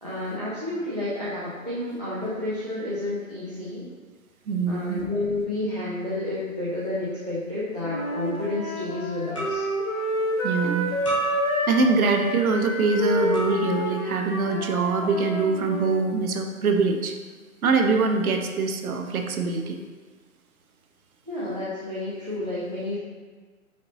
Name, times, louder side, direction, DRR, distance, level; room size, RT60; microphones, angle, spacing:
voice 1, 0.0-3.9 4.7-9.6 21.3-23.0, left 2 dB, 30° right, -9 dB, 0.4 m, -30 dB
voice 2, 4.5-5.1 10.4-10.9 11.7-17.1 17.6-19.8, right 4 dB, 80° right, 5 dB, 0.7 m, -23 dB
Wind instrument woodwind instrument, 7.8-16.0, left 1 dB, 70° left, 1.0 m, -29 dB
sound 1, 7.9-8.2 9.4-9.9 11.0-11.9 13.3-14.0, right 2 dB, 25° left, 0.7 m, -32 dB
5.1 x 3.8 x 2.6 m, 1.4 s
hypercardioid pair, 175°, 42 cm